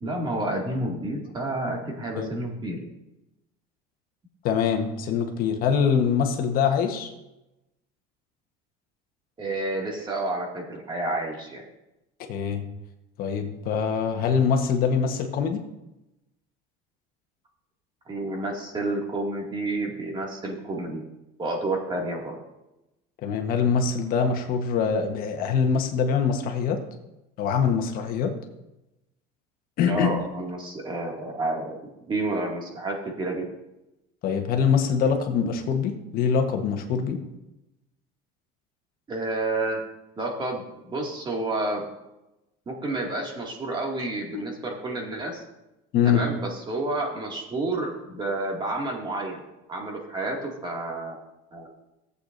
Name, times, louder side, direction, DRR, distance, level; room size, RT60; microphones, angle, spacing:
voice 1, 0.0-2.8 9.4-11.6 18.1-21.0 21.4-22.4 29.9-31.8 32.1-33.5 39.1-39.8 40.2-41.8 42.7-45.4 46.0-49.4 49.7-51.2 51.5-51.7, right 2 dB, 25° right, 0 dB, 2.2 m, -30 dB
voice 2, 4.4-7.1 12.3-12.6 13.2-15.6 23.2-26.8 27.4-28.3 29.8-30.1 34.2-37.2 44.3-44.4 45.9-46.2, left 6 dB, 50° left, 5 dB, 1.3 m, -24 dB
15.0 x 8.2 x 2.6 m, 0.95 s
supercardioid pair, 125°, 18 cm